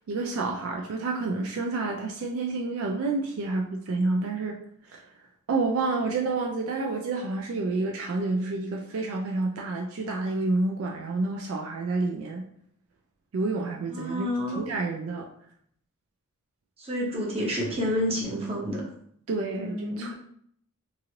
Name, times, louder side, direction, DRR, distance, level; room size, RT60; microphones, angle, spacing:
voice 1, 0.1-4.6 4.9-5.0 5.5-12.4 13.3-14.3 14.6-15.3 19.3-20.1, right 3 dB, 65° right, 1 dB, 0.4 m, -29 dB
voice 2, 13.9-14.6 16.8-18.9 19.6-20.1, equal, 30° right, -3 dB, 0.8 m, -29 dB
3.0 x 2.5 x 2.8 m, 0.66 s
head